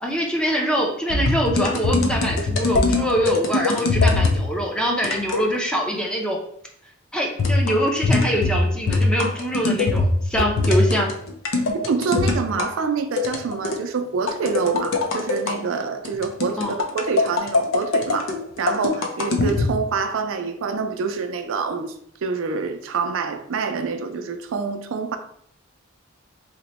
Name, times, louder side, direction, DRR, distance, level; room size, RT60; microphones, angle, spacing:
voice 1, 0.0-6.4 7.1-11.1 16.6-16.8, equal, 5° left, 0.5 m, -24 dB
sound 1, 1.1-4.4 5.0-5.5 7.4-12.7 13.2-13.8 14.3-15.6 16.1-19.7, left 3 dB, 80° left, 0.5 m, -21 dB
voice 2, 11.8-21.9 22.2-25.2, right 5 dB, 80° right, 0.4 m, -26 dB
2.9 x 2.1 x 4.0 m
head